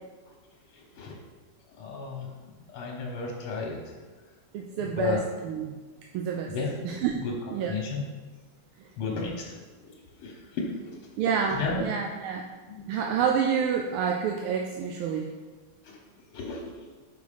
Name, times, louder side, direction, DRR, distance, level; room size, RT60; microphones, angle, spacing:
voice 1, 0.7-1.1 1.8-3.8 4.8-5.2 6.5-6.7 7.2-7.3 7.7-8.0 9.0-9.5 9.8-9.9 10.2-10.9 11.5-11.8 12.7-12.8 15.9-16.0 16.3-16.6, left 4 dB, 80° left, -1 dB, 1.8 m, -33 dB
voice 2, 4.5-5.8 6.1-6.6 6.8-7.2 7.5-7.7 11.2-12.5 12.9-15.3, right 7 dB, 80° right, 1 dB, 1.4 m, -28 dB
5.3 x 4.6 x 5.0 m, 1.4 s
omnidirectional pair, 2.4 m